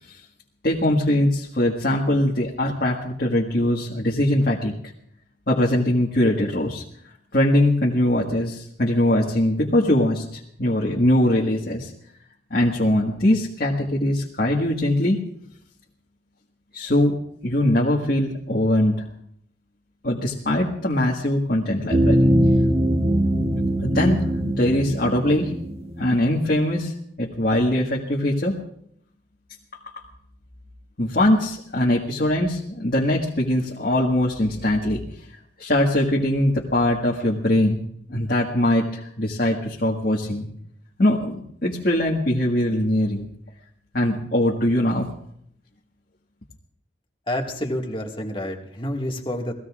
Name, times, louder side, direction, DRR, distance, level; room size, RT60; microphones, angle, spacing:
voice 1, 0.6-4.7 5.5-6.8 7.3-11.9 12.5-15.2 16.7-17.2 17.4-19.0 20.0-22.3 23.8-25.5 26.0-28.6 29.9-30.0 31.0-35.0 35.6-40.5 41.0-43.3 43.9-45.1, left 1 dB, 50° left, -3 dB, 1.7 m, -22 dB
sound 1, 21.9-26.3, equal, 35° right, 1.3 m, -21 dB
voice 2, 47.3-49.5, left 1 dB, 25° left, 1 dB, 1.9 m, -28 dB
29.0 x 19.0 x 2.5 m, 0.69 s
head